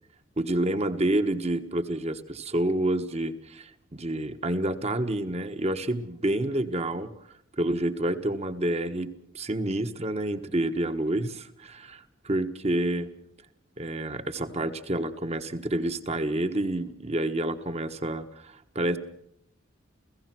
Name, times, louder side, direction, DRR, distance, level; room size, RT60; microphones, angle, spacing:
voice 1, 0.4-7.1 7.6-13.1 13.8-19.0, right 1 dB, 30° right, 9 dB, 1.3 m, -28 dB
29.0 x 16.5 x 6.1 m, 0.75 s
head